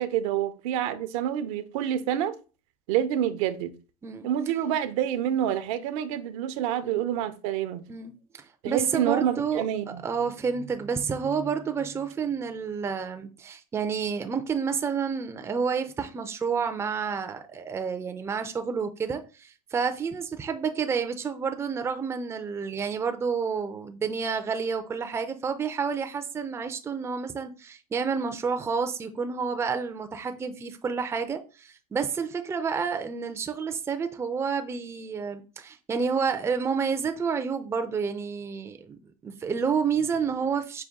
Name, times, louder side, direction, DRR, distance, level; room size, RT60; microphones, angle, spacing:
voice 1, 0.0-2.4 2.9-3.7 4.2-7.8 8.6-10.0, right 10 dB, 65° right, 0.6 m, -27 dB
voice 2, 6.8-7.2 7.9-8.1 8.6-9.6 10.0-40.8, right 6 dB, 15° right, 0.4 m, -29 dB
5.1 x 2.2 x 3.5 m
supercardioid pair, 110°, 18 cm